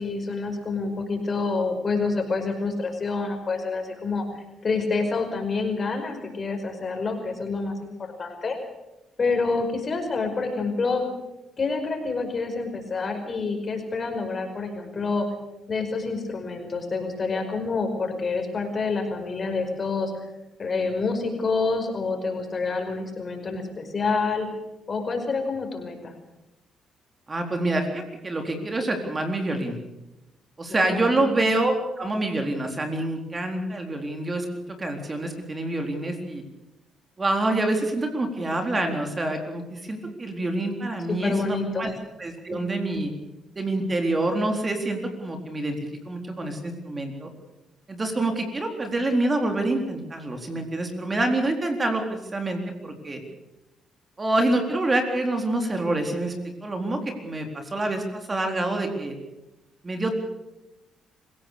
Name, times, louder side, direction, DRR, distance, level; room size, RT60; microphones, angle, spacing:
voice 1, 0.0-8.6 9.2-11.0 11.6-15.3 15.7-20.1 20.6-24.5 24.9-26.1 30.7-31.3 41.1-41.9 42.5-42.7, left 4 dB, 40° left, 4 dB, 5.2 m, -27 dB
voice 2, 27.3-29.8 30.6-34.5 34.8-36.4 37.2-41.9 42.2-43.1 43.6-45.8 46.0-47.3 47.9-53.2 54.2-56.3 56.6-59.2 59.8-60.2, right 2 dB, 25° right, 4 dB, 4.0 m, -26 dB
26.0 x 16.5 x 6.9 m, 0.97 s
cardioid pair, 90°, 0 cm